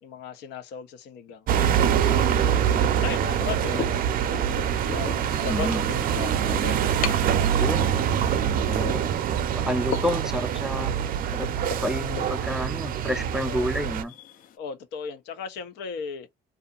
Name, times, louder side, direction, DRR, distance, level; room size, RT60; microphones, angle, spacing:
voice 1, 0.0-2.2 3.0-4.0 4.9-7.1 13.4-13.7 14.6-16.3, left 6 dB, 85° left, 0.7 m, -37 dB
sound 1, 1.5-14.0, right 9 dB, 60° right, 0.5 m, -24 dB
sound 2, 2.7-14.6, left 8 dB, 55° left, 0.4 m, -39 dB
voice 2, 5.5-5.8 7.5-7.9 8.5-9.0 9.5-10.9 11.3-11.5 11.8-14.1, left 1 dB, 5° right, 0.4 m, -30 dB
2.7 x 2.4 x 2.4 m
cardioid pair, 110°, 17 cm